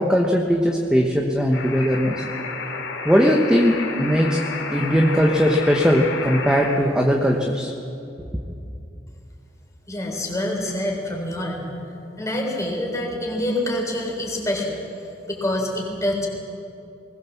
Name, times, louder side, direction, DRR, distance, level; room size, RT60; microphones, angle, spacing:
voice 1, 0.0-2.2 3.0-4.4 4.7-7.7, equal, 5° right, 1 dB, 1.2 m, -19 dB
sound 1, 1.5-6.8, left 4 dB, 85° left, 2.5 m, -31 dB
voice 2, 9.9-11.7 12.2-14.8 15.3-16.3, left 1 dB, 20° left, 0 dB, 3.9 m, -26 dB
20.5 x 19.5 x 7.2 m, 2.7 s
head